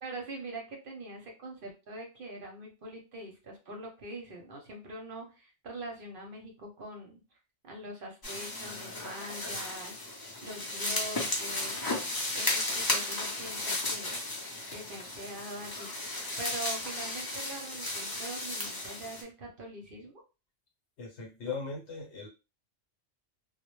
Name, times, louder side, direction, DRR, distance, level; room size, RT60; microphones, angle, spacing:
voice 1, 0.0-7.4 7.6-10.0 10.4-11.9 12.3-14.2 14.7-15.9 16.4-20.2, right 1 dB, 55° right, 1 dB, 0.7 m, -43 dB
sound 1, 8.2-19.2, left 2 dB, 30° left, 0.4 m, -34 dB
voice 2, 21.0-22.3, left 4 dB, 70° left, 0 dB, 0.9 m, -38 dB
2.0 x 2.0 x 2.9 m, 0.29 s
omnidirectional pair, 1.2 m